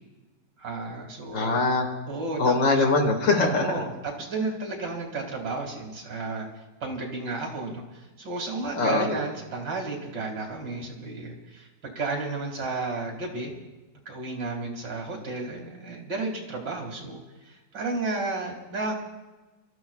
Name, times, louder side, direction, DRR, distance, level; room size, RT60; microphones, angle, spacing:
voice 1, 0.6-1.6 2.1-2.8 3.4-6.5 6.8-13.5 14.1-18.9, right 3 dB, 60° right, 2 dB, 2.9 m, -32 dB
voice 2, 1.3-1.9 2.4-3.7 8.8-9.1, left 3 dB, 70° left, 2 dB, 2.7 m, -22 dB
28.0 x 14.0 x 2.4 m, 1.2 s
omnidirectional pair, 2.1 m